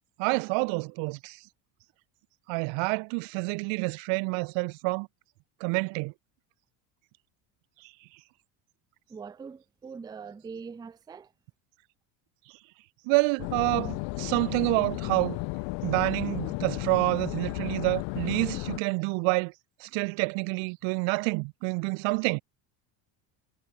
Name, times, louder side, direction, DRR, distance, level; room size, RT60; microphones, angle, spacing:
voice 1, 0.2-1.4 2.5-5.1 5.6-6.1 13.1-15.4 15.8-19.5 19.8-22.4, right 30 dB, 65° right, 0.6 m, -28 dB
voice 2, 9.1-11.3, right 5 dB, 10° right, 0.4 m, -42 dB
sound 1, 13.4-18.8, left 27 dB, 65° left, 0.8 m, -34 dB
cardioid pair, 120°, 49 cm